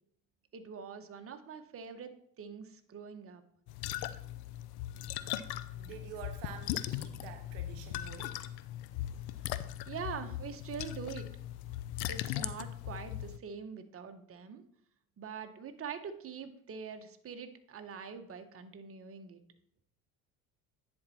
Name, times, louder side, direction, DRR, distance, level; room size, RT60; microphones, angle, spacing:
voice 1, 0.5-2.1 2.4-3.4 9.9-11.3 12.1-14.6 15.2-19.4, right 6 dB, 30° right, 7 dB, 1.1 m, -44 dB
sound 1, 3.7-13.4, left 13 dB, 60° left, 0.6 m, -39 dB
voice 2, 5.5-8.6, right 9 dB, 70° right, 7 dB, 0.9 m, -48 dB
10.0 x 4.5 x 4.3 m, 0.65 s
hypercardioid pair, 70°, 44 cm